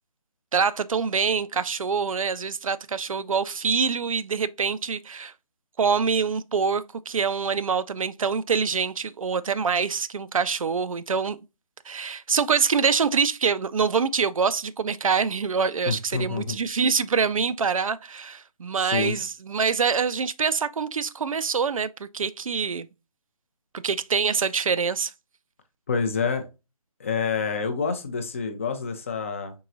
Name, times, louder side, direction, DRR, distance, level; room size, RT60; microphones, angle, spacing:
voice 1, 0.5-5.3 5.8-11.4 11.9-22.9 23.8-25.1, right 5 dB, 65° right, 0.4 m, -25 dB
voice 2, 15.9-16.6 18.8-19.2 25.9-26.5 27.0-29.5, left 5 dB, 20° left, 0.4 m, -27 dB
4.6 x 3.8 x 2.5 m
figure-of-eight pair, 150°, 19 cm